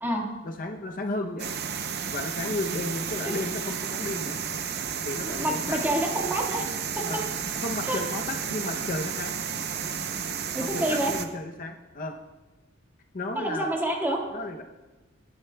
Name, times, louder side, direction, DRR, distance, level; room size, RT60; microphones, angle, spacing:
voice 1, 0.4-1.5 2.1-4.4 5.0-5.9 7.0-7.2 7.6-9.3 10.6-12.2 13.1-13.7 14.3-14.6, left 2 dB, 45° left, 4 dB, 0.7 m, -33 dB
sound 1, 1.4-11.3, right 7 dB, 55° right, 0.7 m, -32 dB
voice 2, 5.2-6.7 7.0-7.1 7.9-8.0 10.5-11.1 13.3-14.2, right 1 dB, 10° right, -1 dB, 1.8 m, -28 dB
18.5 x 10.5 x 2.3 m, 1.1 s
head